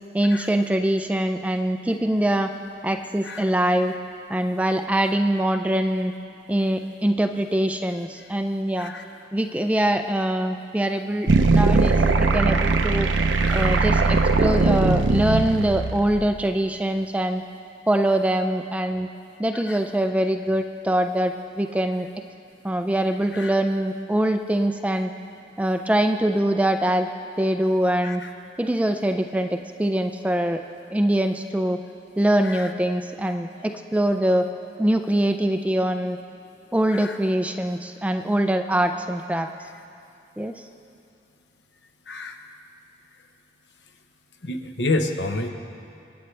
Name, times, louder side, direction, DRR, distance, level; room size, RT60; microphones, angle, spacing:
voice 1, 0.1-2.5 2.8-3.9 4.3-6.1 6.5-8.9 9.3-11.9 12.2-13.1 13.5-17.4 17.9-19.1 19.4-22.1 22.6-25.1 25.6-27.1 27.4-28.2 28.6-30.6 30.9-31.8 32.2-34.5 34.8-36.2 36.7-39.5 40.4-40.6, right 1 dB, 5° right, 6 dB, 0.4 m, -23 dB
sound 1, 11.3-16.3, right 3 dB, 85° right, 0.8 m, -20 dB
voice 2, 42.1-42.4 44.4-45.5, left 2 dB, 70° left, 5 dB, 1.0 m, -29 dB
27.5 x 9.5 x 3.3 m, 2.7 s
head